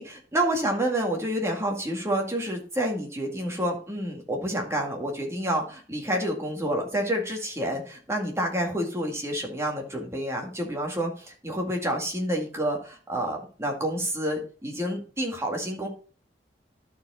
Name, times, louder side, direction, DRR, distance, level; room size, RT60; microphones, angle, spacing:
voice 1, 0.0-15.9, right 1 dB, 15° right, 1 dB, 2.0 m, -29 dB
12.0 x 4.7 x 4.3 m, 0.40 s
head